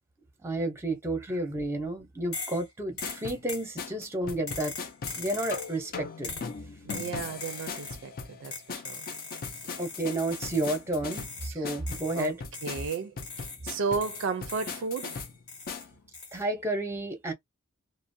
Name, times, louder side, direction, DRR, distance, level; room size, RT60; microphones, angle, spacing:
voice 1, 0.4-4.7 5.2-6.3 9.8-12.4 16.3-17.3, right 1 dB, 10° right, 0.7 m, -31 dB
sound 1, 2.3-2.7 3.0-3.7 4.5-5.8 6.2-6.5 6.9-8.0 8.5-10.8 11.1-11.6 11.9-13.7 14.0-15.8 16.1-16.4, left 4 dB, 75° left, 1.2 m, -41 dB
sound 2, 3.0-15.9, left 5 dB, 45° left, 0.4 m, -39 dB
voice 2, 6.8-9.0 11.5-11.7 12.1-12.3 12.6-15.2, right 5 dB, 60° right, 0.4 m, -34 dB
2.4 x 2.0 x 2.6 m
head